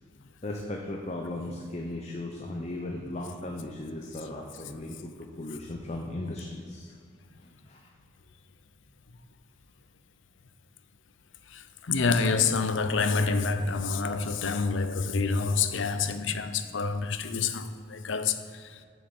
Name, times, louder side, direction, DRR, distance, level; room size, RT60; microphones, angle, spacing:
voice 1, 0.4-6.9 7.4-7.8, left 1 dB, 35° left, 0.8 m, -37 dB
voice 2, 11.5-18.8, left 4 dB, 75° left, 0.7 m, -27 dB
7.4 x 7.1 x 7.2 m
head